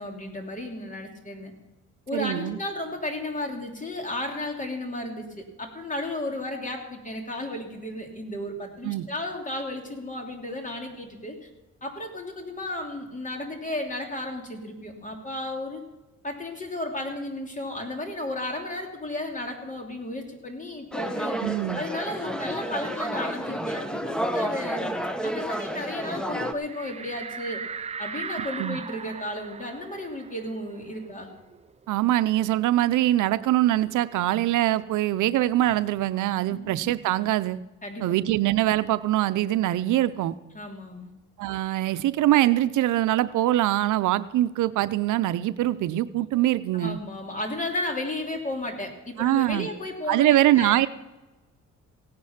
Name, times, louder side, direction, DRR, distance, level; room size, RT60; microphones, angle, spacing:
voice 1, 0.0-1.5 2.1-11.3 11.8-15.8 16.2-21.4 21.7-24.9 25.2-27.6 28.0-31.3 36.5-36.7 37.8-38.0 40.5-41.1 46.7-50.8, left 1 dB, 25° left, 3 dB, 3.0 m, -34 dB
voice 2, 2.1-2.6 8.8-9.0 21.4-21.8 28.6-28.8 31.9-37.6 38.0-40.3 41.4-47.0 49.2-49.7 50.1-50.9, right 14 dB, 80° right, 13 dB, 0.6 m, -23 dB
sound 1, 20.9-26.5, right 1 dB, 5° left, 1.1 m, -30 dB
sound 2, 26.7-31.9 32.2-32.3 32.6-34.3, right 6 dB, 20° right, 0.5 m, -39 dB
16.5 x 9.6 x 5.8 m, 1.1 s
cardioid pair, 90°, 30 cm